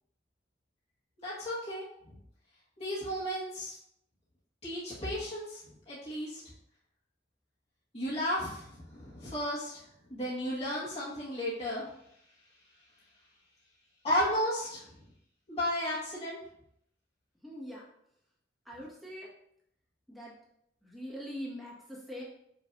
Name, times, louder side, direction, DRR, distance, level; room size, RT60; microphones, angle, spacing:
voice 1, 1.2-1.8 2.8-3.7 4.6-5.6 5.9-6.4 7.9-9.8 10.1-11.9 14.0-14.8 15.5-16.4, equal, 35° left, -9 dB, 1.7 m, -33 dB
voice 2, 17.4-17.8 18.7-19.3 20.1-20.3 20.8-22.2, equal, ahead, -6 dB, 1.7 m, -42 dB
6.3 x 5.7 x 2.7 m, 0.72 s
head